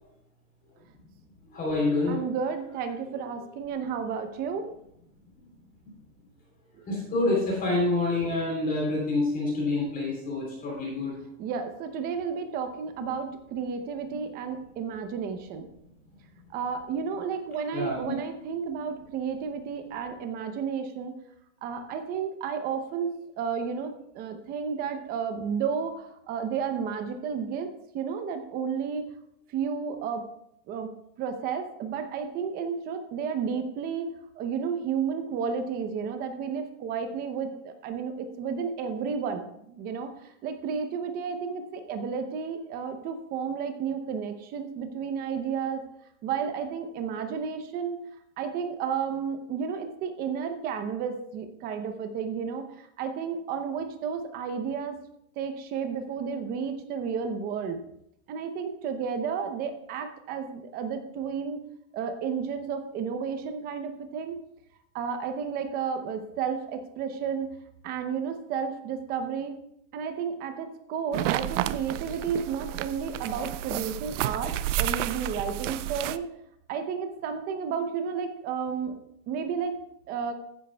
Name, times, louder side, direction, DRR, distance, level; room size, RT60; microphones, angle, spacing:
voice 1, 1.5-2.2 6.9-11.1 17.7-18.0, left 2 dB, 20° left, -3 dB, 3.4 m, -27 dB
voice 2, 2.1-4.7 11.4-15.7 16.5-21.1 21.6-29.1 29.5-30.3 30.7-30.9 31.2-45.8 46.2-48.0 48.4-55.0 55.4-57.8 58.3-61.6 61.9-64.4 64.9-67.5 67.8-69.6 69.9-76.3 76.7-78.9 79.3-79.8 80.1-80.3, right 6 dB, 20° right, 8 dB, 0.7 m, -32 dB
sound 1, 71.1-76.2, right 13 dB, 60° right, 0.5 m, -31 dB
15.0 x 9.5 x 2.3 m, 0.76 s
supercardioid pair, 160°, 44 cm